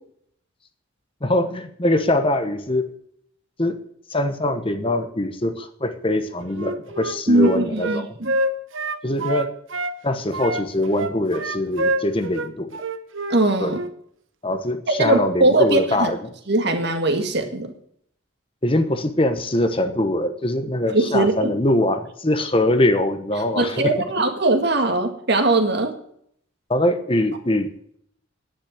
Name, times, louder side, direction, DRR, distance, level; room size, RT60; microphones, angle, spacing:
voice 1, 1.2-2.8 3.6-3.8 4.1-8.1 9.0-9.5 10.0-12.8 13.6-13.8 14.4-16.2 18.6-23.9 26.7-28.0, left 1 dB, 25° left, 9 dB, 1.1 m, -22 dB
Wind instrument woodwind instrument, 6.5-10.0 10.3-13.4 13.7-13.9, right 2 dB, 75° right, 1.0 m, -27 dB
voice 2, 7.3-8.3 13.3-13.8 15.0-16.1 16.5-17.7 20.9-21.5 23.6-25.9, right 2 dB, 55° right, 6 dB, 1.9 m, -20 dB
10.0 x 9.6 x 8.1 m, 0.67 s
head